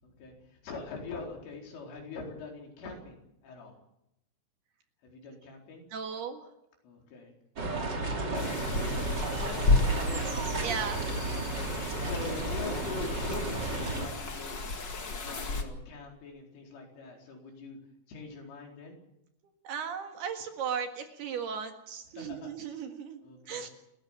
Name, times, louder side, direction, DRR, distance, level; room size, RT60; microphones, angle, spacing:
voice 1, 0.0-3.8 5.0-5.8 6.8-7.3 8.0-10.4 11.3-11.7 12.0-14.6 15.2-17.8 18.1-19.0 22.1-22.6 23.2-23.6, left 3 dB, 80° left, 1 dB, 6.9 m, -43 dB
voice 2, 5.9-6.4 7.7-7.8 10.6-11.0 19.7-23.2 23.5-23.7, right 7 dB, 60° right, 5 dB, 3.4 m, -36 dB
sound 1, 7.6-14.1, right 3 dB, 30° right, 2.5 m, -33 dB
sound 2, 8.3-15.6, left 3 dB, 50° left, 1.3 m, -32 dB
29.5 x 14.5 x 7.4 m, 0.81 s
omnidirectional pair, 5.6 m